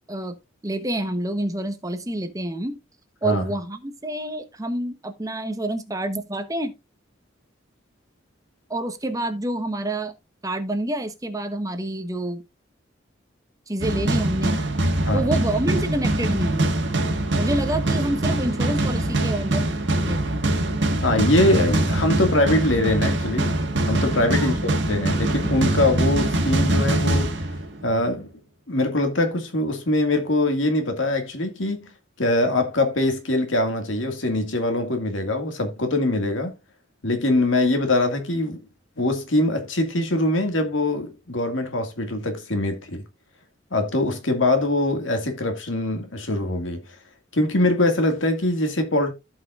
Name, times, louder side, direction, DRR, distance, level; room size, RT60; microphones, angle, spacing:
voice 1, 0.6-2.8 3.2-6.7 8.7-10.1 10.4-12.4 13.7-14.6 15.1-16.7 17.3-19.7 20.0-20.4 24.3-24.6, right 1 dB, 20° right, 0.9 m, -28 dB
sound 1, 13.8-28.0, right 1 dB, 65° right, 1.8 m, -23 dB
voice 2, 21.0-23.6 23.9-27.3 27.8-28.3 28.7-31.9 32.2-36.5 37.0-38.6 39.0-43.0 43.7-46.8 47.3-49.1, left 1 dB, 85° left, 2.1 m, -23 dB
15.0 x 5.4 x 2.5 m
head